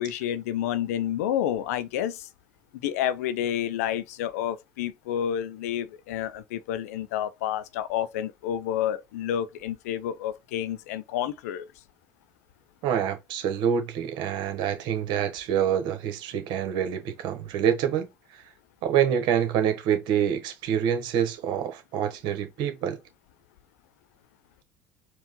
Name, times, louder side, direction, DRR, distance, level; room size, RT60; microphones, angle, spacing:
voice 1, 0.0-2.3 2.8-11.7, left 10 dB, 80° left, 0.5 m, -29 dB
voice 2, 12.8-18.1 18.8-23.0, right 9 dB, 65° right, 1.2 m, -26 dB
4.6 x 2.4 x 3.7 m
hypercardioid pair, 70°, 8 cm